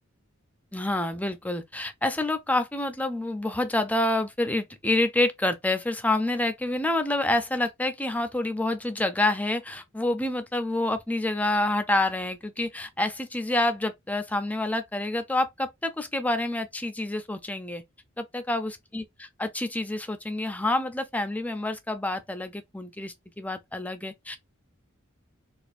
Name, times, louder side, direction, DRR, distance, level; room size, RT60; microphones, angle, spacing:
voice 1, 0.7-17.8 18.2-24.4, left 2 dB, 5° left, 0.5 m, -28 dB
4.2 x 2.4 x 2.5 m
head